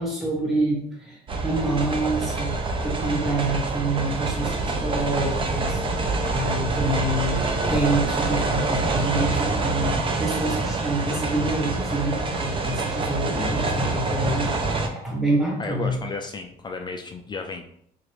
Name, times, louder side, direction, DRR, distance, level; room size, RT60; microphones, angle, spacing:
voice 1, 0.0-2.5 2.8-16.0, right 2 dB, ahead, -4 dB, 1.1 m, -27 dB
sound 1, 1.3-14.9, right 3 dB, 30° right, 0.5 m, -26 dB
voice 2, 13.3-13.7 15.6-17.7, left 4 dB, 25° left, 4 dB, 0.3 m, -33 dB
3.2 x 2.9 x 3.1 m, 0.69 s
cardioid pair, 110°, 17 cm